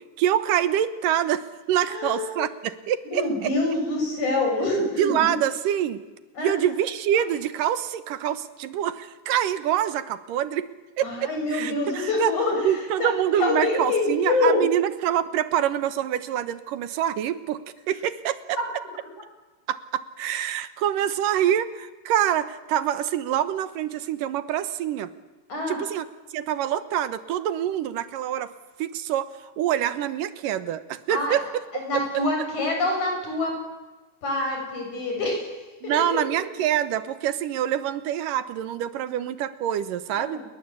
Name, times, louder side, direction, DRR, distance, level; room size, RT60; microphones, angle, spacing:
voice 1, 0.0-3.5 5.0-6.0 6.4-10.7 11.0-11.1 11.5-12.3 12.6-17.6 17.9-18.6 19.7-25.1 25.7-26.1 26.3-28.5 28.8-29.3 29.6-31.6 35.8-40.4, right 10 dB, 85° right, 13 dB, 2.8 m, -26 dB
voice 2, 1.8-2.4 3.1-5.3 6.4-6.7 11.0-12.6 13.0-14.6 18.6-18.7 25.5-25.8 31.1-31.4 31.7-33.5 34.2-35.5 35.8-36.4 40.1-40.4, left 2 dB, 60° left, 2 dB, 8.6 m, -26 dB
29.0 x 22.0 x 8.5 m, 1.2 s
omnidirectional pair, 3.8 m